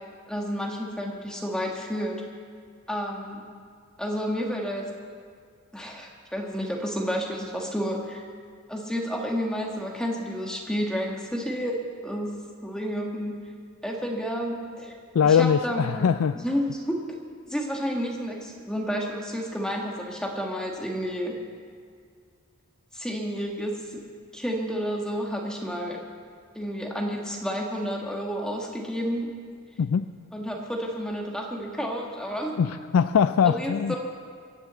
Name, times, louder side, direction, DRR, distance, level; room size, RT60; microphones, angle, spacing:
voice 1, 0.3-2.2 2.9-3.4 4.0-4.9 5.7-8.2 8.7-11.8 12.0-12.3 12.6-13.4 13.8-14.9 15.2-16.0 16.4-17.0 17.5-21.4 22.9-24.0 24.3-26.0 26.5-29.3 30.3-32.6 33.4-34.0, equal, 5° left, 0 dB, 1.4 m, -30 dB
voice 2, 15.1-16.4 29.8-30.1 32.6-34.0, left 7 dB, 80° left, 11 dB, 0.4 m, -21 dB
22.0 x 7.4 x 7.9 m, 2.1 s
head